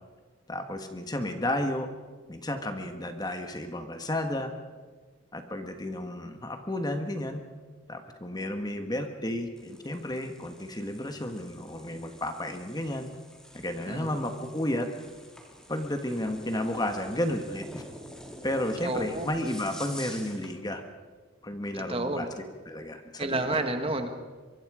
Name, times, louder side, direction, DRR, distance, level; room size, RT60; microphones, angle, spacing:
voice 1, 0.5-1.9 2.3-4.5 5.3-7.4 7.9-13.1 13.5-14.9 15.7-17.8 18.4-20.8 21.4-22.3 22.7-23.6, left 1 dB, 20° left, 6 dB, 1.5 m, -32 dB
sound 1, 9.6-20.5, equal, 5° left, 2.3 m, -48 dB
voice 2, 13.8-14.2 18.8-19.3 21.9-22.3 23.2-24.1, right 2 dB, 30° right, 6 dB, 1.6 m, -30 dB
23.5 x 23.5 x 5.0 m, 1.4 s
head